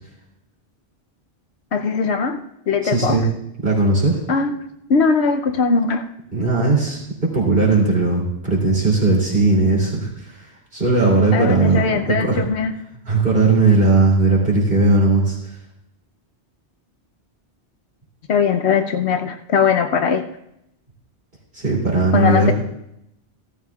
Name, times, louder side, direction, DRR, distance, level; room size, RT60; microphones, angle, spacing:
voice 1, 1.7-3.3 4.3-4.5 4.9-6.1 11.3-12.7 18.3-20.2 22.1-22.5, left 5 dB, 80° left, 6 dB, 1.0 m, -20 dB
voice 2, 2.8-3.2 3.6-4.2 6.3-7.0 7.3-11.8 12.2-12.4 13.1-15.4 21.5-22.5, right 3 dB, 55° right, -3 dB, 3.1 m, -17 dB
16.0 x 13.0 x 2.4 m, 0.79 s
omnidirectional pair, 1.1 m